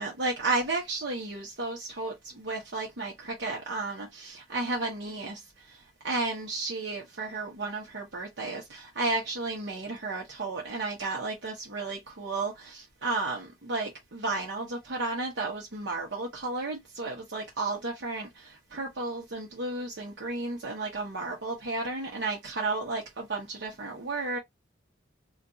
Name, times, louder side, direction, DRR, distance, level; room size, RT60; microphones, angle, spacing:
voice 1, 0.0-24.4, right 3 dB, 60° right, 0.9 m, -33 dB
2.4 x 2.4 x 3.8 m
head